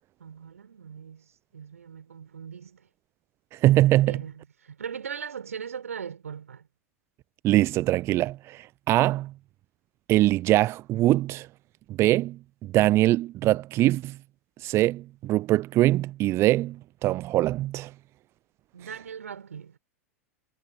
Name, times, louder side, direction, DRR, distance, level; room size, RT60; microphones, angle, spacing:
voice 1, 0.2-2.9 4.1-6.7 18.7-19.8, right 7 dB, 70° right, 5.8 m, -39 dB
voice 2, 3.6-4.2 7.4-9.3 10.1-11.5 12.0-14.2 14.6-17.9, right 16 dB, 35° right, 0.6 m, -23 dB
figure-of-eight pair, 95°, 8 cm